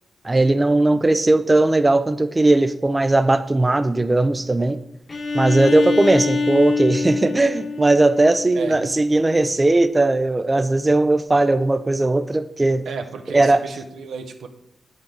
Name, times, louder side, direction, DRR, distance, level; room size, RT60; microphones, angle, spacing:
voice 1, 0.2-4.8 5.3-12.8 13.3-13.6, right 2 dB, 15° right, 11 dB, 0.4 m, -18 dB
Bowed string instrument, 5.1-8.8, left 4 dB, 30° left, 1.0 m, -25 dB
voice 2, 8.5-8.9 12.8-14.5, right 5 dB, 85° right, 6 dB, 1.0 m, -32 dB
8.6 x 8.5 x 3.8 m, 0.82 s
wide cardioid pair, 155°, 0 cm